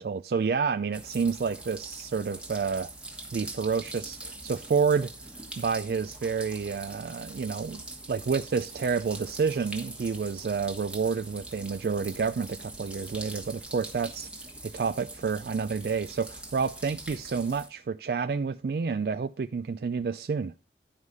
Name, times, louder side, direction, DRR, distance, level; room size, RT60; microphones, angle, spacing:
voice 1, 0.0-2.9 3.3-5.1 5.6-14.3 14.6-20.5, right 5 dB, 55° right, 0.3 m, -29 dB
sound 1, 0.9-17.7, right 2 dB, 5° right, 1.2 m, -43 dB
11.5 x 4.9 x 5.4 m
head